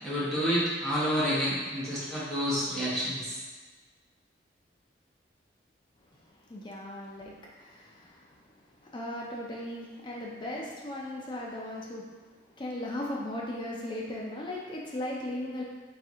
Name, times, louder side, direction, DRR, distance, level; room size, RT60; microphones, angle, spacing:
voice 1, 0.0-3.4, equal, ahead, -11 dB, 1.0 m, -29 dB
voice 2, 6.5-8.3 8.8-12.1 12.6-15.6, left 1 dB, 25° left, -3 dB, 0.4 m, -37 dB
4.1 x 2.5 x 3.6 m, 1.3 s
head